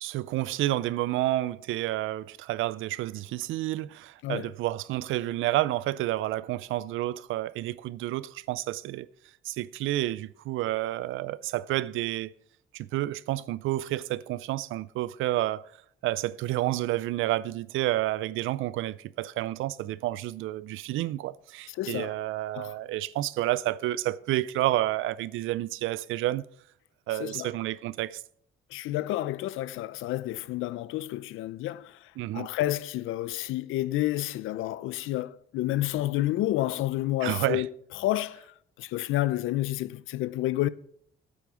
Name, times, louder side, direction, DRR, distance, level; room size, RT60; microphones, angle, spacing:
voice 1, 0.0-9.1 9.4-12.3 12.7-15.6 16.0-26.5 27.1-28.2 32.2-32.5 37.2-37.6, right 15 dB, 85° right, 0.5 m, -30 dB
voice 2, 21.7-22.2 22.5-22.7 27.2-27.5 28.7-37.7 38.0-40.7, left 15 dB, 90° left, 0.6 m, -30 dB
8.7 x 8.2 x 6.1 m
cardioid pair, 90°, 20 cm